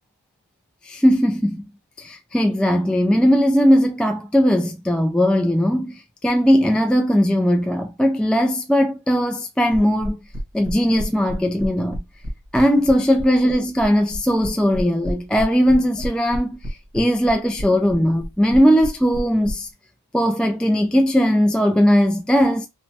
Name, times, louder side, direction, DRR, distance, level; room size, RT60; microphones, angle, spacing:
voice 1, 0.8-1.6 2.0-10.2 10.5-12.0 12.5-19.7 20.1-22.7, equal, 5° left, 0.3 m, -18 dB
sound 1, 9.7-19.5, equal, 40° right, 1.3 m, -30 dB
3.0 x 2.2 x 2.7 m
wide cardioid pair, 60°, 39 cm